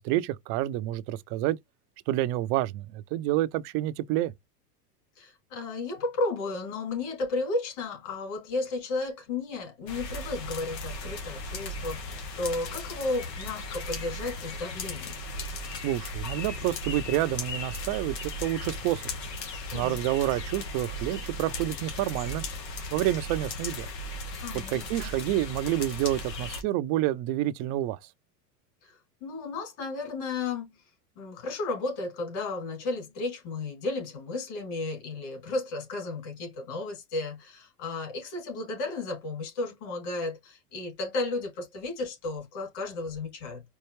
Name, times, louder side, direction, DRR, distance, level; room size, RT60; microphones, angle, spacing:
voice 1, 0.0-1.6 2.1-4.3 15.8-19.1 19.7-22.4 22.9-23.9 24.7-28.0, right 14 dB, 45° right, 0.5 m, -28 dB
voice 2, 5.2-15.2 19.7-20.0 24.4-25.1 28.8-30.7 31.2-43.6, left 3 dB, 55° left, 3.0 m, -33 dB
sound 1, 9.9-26.6, left 2 dB, 90° left, 1.2 m, -37 dB
4.5 x 2.3 x 3.1 m
hypercardioid pair, 105°, 48 cm